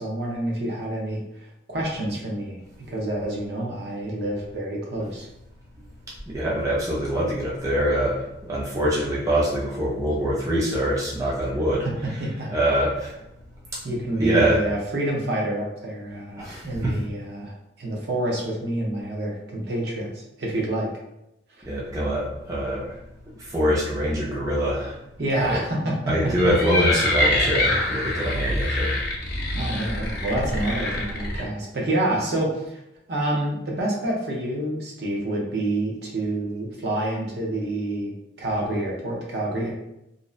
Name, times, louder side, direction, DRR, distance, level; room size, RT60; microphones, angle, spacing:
voice 1, 0.0-2.6 2.9-5.3 12.2-12.5 13.8-20.9 21.6-21.7 25.2-26.3 29.5-32.8 33.1-39.7, right 1 dB, 60° right, -2 dB, 0.6 m, -28 dB
voice 2, 6.3-12.2 12.5-13.1 14.2-14.6 16.4-17.0 21.7-23.0 23.4-25.0 25.4-25.6 26.1-29.0, equal, 20° right, -5 dB, 0.4 m, -24 dB
sound 1, 26.3-31.4, left 1 dB, 55° left, 0.5 m, -25 dB
2.5 x 2.0 x 2.3 m, 0.84 s
head